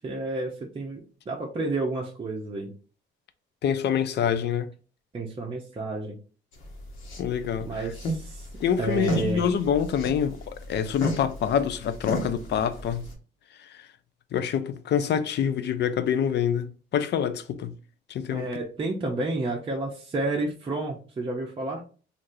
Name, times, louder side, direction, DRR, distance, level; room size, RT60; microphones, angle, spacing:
voice 1, 0.0-1.0 1.3-2.7 5.1-6.2 7.6-8.5 8.8-9.4 18.3-21.8, right 2 dB, 25° right, 0.6 m, -30 dB
voice 2, 3.6-4.7 7.2-7.9 8.6-13.1 14.3-17.7 18.1-18.5, left 8 dB, 60° left, 0.4 m, -26 dB
sound 1, 6.5-13.1, equal, 80° left, 1.1 m, -34 dB
3.2 x 2.5 x 2.6 m
cardioid pair, 90°, 20 cm